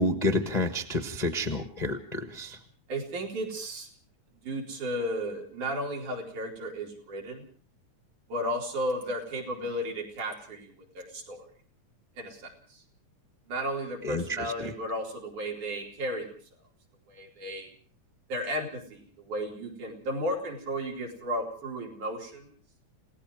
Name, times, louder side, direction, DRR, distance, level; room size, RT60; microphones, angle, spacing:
voice 1, 0.0-2.6 14.0-14.7, left 1 dB, 35° left, 3 dB, 0.7 m, -29 dB
voice 2, 2.9-3.9 4.4-7.4 8.3-11.5 12.2-12.5 13.5-16.4 17.1-17.7 18.3-22.5, equal, 90° right, 0 dB, 5.7 m, -34 dB
29.5 x 18.0 x 5.0 m, 0.44 s
omnidirectional pair, 3.4 m